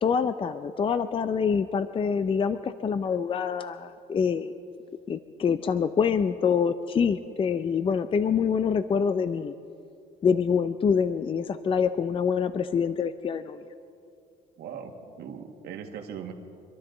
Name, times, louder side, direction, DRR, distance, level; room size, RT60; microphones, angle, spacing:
voice 1, 0.0-4.5 5.1-9.5 10.2-13.6, left 6 dB, 30° left, 11 dB, 0.5 m, -26 dB
voice 2, 14.6-16.3, right 7 dB, 70° right, 3 dB, 1.7 m, -39 dB
25.5 x 12.5 x 3.9 m, 2.5 s
cardioid pair, 110°, 17 cm